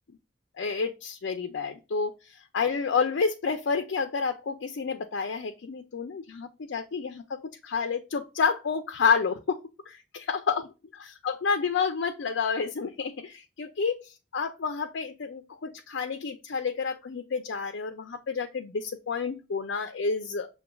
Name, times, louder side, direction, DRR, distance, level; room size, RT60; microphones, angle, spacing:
voice 1, 0.6-2.1 2.5-9.6 9.9-10.0 10.3-10.6 10.9-20.5, left 5 dB, 80° left, 6 dB, 0.5 m, -29 dB
6.7 x 2.3 x 2.2 m, 0.28 s
head